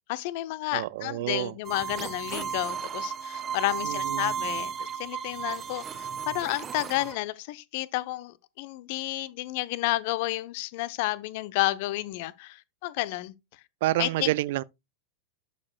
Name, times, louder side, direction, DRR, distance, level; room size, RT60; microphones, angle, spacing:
voice 1, 0.1-13.3 14.0-14.3, left 18 dB, 50° left, 0.6 m, -31 dB
voice 2, 0.7-1.6 3.8-4.3 13.8-14.6, right 16 dB, 50° right, 0.4 m, -28 dB
sound 1, 1.6-7.2, right 7 dB, 25° right, 0.8 m, -34 dB
11.5 x 6.7 x 2.3 m
figure-of-eight pair, 90°, 0 cm